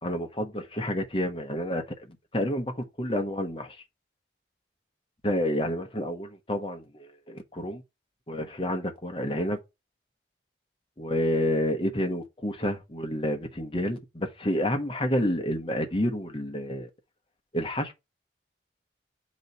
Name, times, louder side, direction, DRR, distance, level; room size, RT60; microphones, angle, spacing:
voice 1, 0.0-3.8 5.2-7.8 8.3-9.6 11.0-16.9 17.5-17.9, equal, 30° left, 1.1 m, -29 dB
7.9 x 3.2 x 4.2 m
head